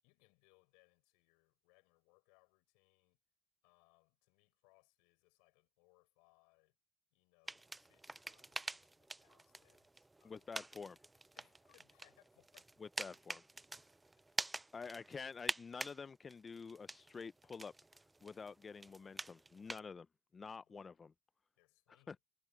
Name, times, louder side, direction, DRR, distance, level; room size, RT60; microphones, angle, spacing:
voice 1, 0.0-3.2 3.6-6.8 7.1-10.5 11.4-12.7 20.4-21.0 21.6-22.2, left 31 dB, 80° left, 6.6 m, -73 dB
sound 1, 7.5-16.0 16.3-19.8, right 2 dB, 15° right, 0.5 m, -47 dB
voice 2, 10.2-11.0 12.8-13.4 14.7-20.1 20.3-21.1 22.1-22.2, left 5 dB, 35° left, 0.5 m, -49 dB
supercardioid pair, 70°, 0 cm